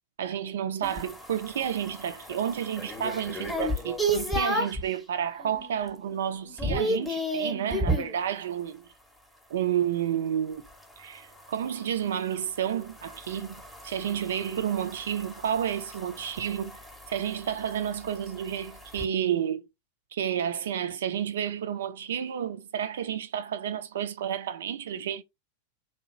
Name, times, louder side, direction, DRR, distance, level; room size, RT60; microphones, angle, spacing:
voice 1, 0.2-8.9 9.5-10.6 11.0-16.8 17.1-19.6 20.1-25.2, right 9 dB, 60° right, 0.4 m, -31 dB
sound 1, 0.8-4.9 5.4-5.8 6.1-8.2 10.7-19.1, right 1 dB, ahead, 0.7 m, -33 dB
2.8 x 2.2 x 3.0 m
figure-of-eight pair, 90°, 0 cm